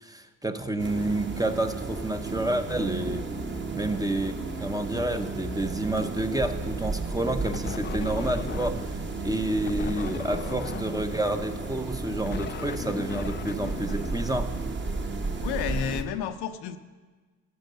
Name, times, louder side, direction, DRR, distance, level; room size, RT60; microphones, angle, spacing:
voice 1, 0.0-3.3 3.7-8.9 9.2-14.5, right 1 dB, 10° right, 7 dB, 0.7 m, -29 dB
sound 1, 0.8-16.0, right 3 dB, 30° right, 1.1 m, -33 dB
sound 2, 7.4-9.0 9.6-14.8, left 9 dB, 30° left, 0.4 m, -39 dB
voice 2, 15.4-16.8, left 9 dB, 70° left, 8 dB, 0.8 m, -31 dB
12.5 x 5.3 x 6.7 m, 1.4 s
supercardioid pair, 70°, 40 cm